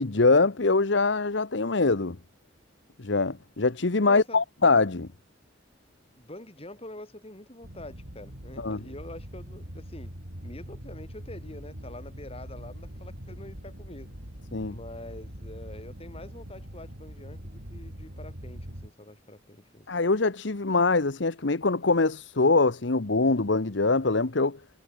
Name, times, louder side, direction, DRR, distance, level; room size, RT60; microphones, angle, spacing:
voice 1, 0.0-2.2 3.0-5.1 8.6-8.8 14.5-14.7 19.9-24.6, left 3 dB, 70° left, 1.1 m, -23 dB
voice 2, 4.0-4.4 6.2-10.1 10.4-14.1 14.7-19.9, left 1 dB, 30° left, 6.4 m, -45 dB
sound 1, 7.6-18.9, equal, 70° right, 6.9 m, -43 dB
head